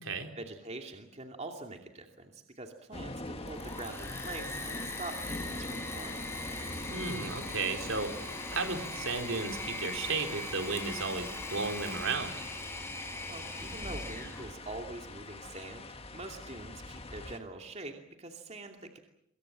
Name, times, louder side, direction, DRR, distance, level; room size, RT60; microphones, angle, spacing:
voice 1, 0.4-6.2 13.3-19.0, right 2 dB, 30° right, 3 dB, 2.6 m, -44 dB
sound 1, 2.9-17.4, left 1 dB, 30° left, 1.7 m, -44 dB
Engine / Mechanisms, 3.3-14.5, left 2 dB, 10° left, 5.5 m, -41 dB
voice 2, 6.9-8.1 8.5-12.4, right 4 dB, 70° right, 5 dB, 3.9 m, -34 dB
26.0 x 23.0 x 7.6 m, 0.76 s
head